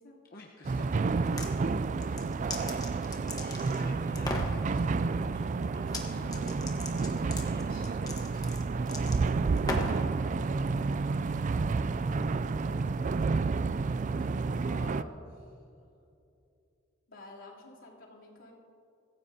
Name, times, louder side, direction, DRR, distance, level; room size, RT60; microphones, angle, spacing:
voice 1, 0.3-1.6 2.5-9.5, left 2 dB, 50° left, -2 dB, 1.1 m, -51 dB
sound 1, 0.6-15.0, right 4 dB, 40° right, 0.3 m, -30 dB
sound 2, 1.1-1.5 2.0-3.8 4.2-4.5 5.8-6.1 6.3-10.1, left 2 dB, 20° left, 1.3 m, -38 dB
voice 2, 11.1-13.5 14.2-15.6 17.1-18.5, left 2 dB, 75° left, -5 dB, 3.3 m, -51 dB
24.5 x 15.0 x 2.8 m, 2.7 s
head